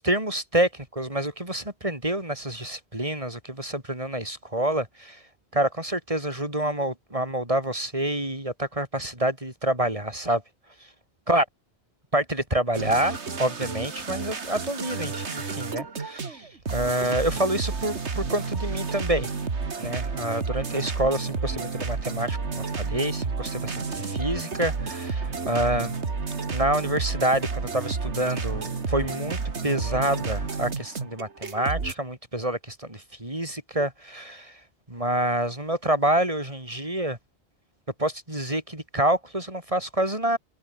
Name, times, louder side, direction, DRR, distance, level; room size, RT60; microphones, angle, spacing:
voice 1, 0.0-5.2 5.5-10.4 11.3-11.5 12.1-19.3 19.8-26.0 26.5-34.6 34.9-37.2 38.0-40.4, right 1 dB, 30° right, 5.8 m, -27 dB
sound 1, 12.7-31.9, right 4 dB, 85° right, 2.3 m, -31 dB
omnidirectional pair, 1.1 m